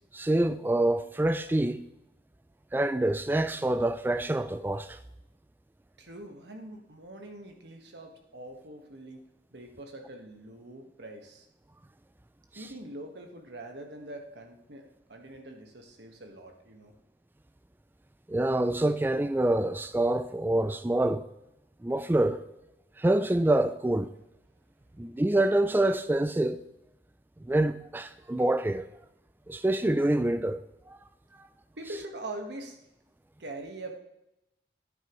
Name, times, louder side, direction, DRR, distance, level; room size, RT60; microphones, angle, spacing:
voice 1, 0.1-1.8 2.7-5.0 12.6-12.7 18.3-21.3 21.8-22.4 23.0-24.1 25.0-26.6 27.4-28.8 29.5-30.6 30.9-31.0, right 1 dB, 10° right, 0.3 m, -26 dB
voice 2, 6.0-9.2 9.5-11.5 12.5-16.9 31.8-32.8 33.4-34.0, right 1 dB, 75° right, 1.4 m, -43 dB
10.0 x 9.0 x 3.1 m
head